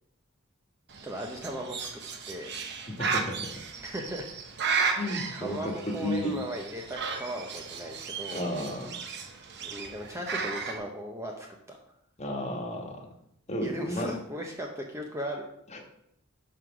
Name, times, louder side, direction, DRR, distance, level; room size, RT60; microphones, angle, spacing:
Bird, 0.9-10.8, right 5 dB, 55° right, 0.9 m, -34 dB
voice 1, 1.0-1.9 2.3-2.5 3.8-4.3 4.8-8.5 9.6-11.8 13.6-15.5, right 1 dB, 15° right, 1 dB, 0.7 m, -37 dB
voice 2, 3.0-3.3 5.0-6.3 8.3-9.0 12.2-13.1 13.5-14.1 15.7-15.8, left 1 dB, 30° left, 1 dB, 1.4 m, -32 dB
5.7 x 4.7 x 6.0 m, 0.74 s
head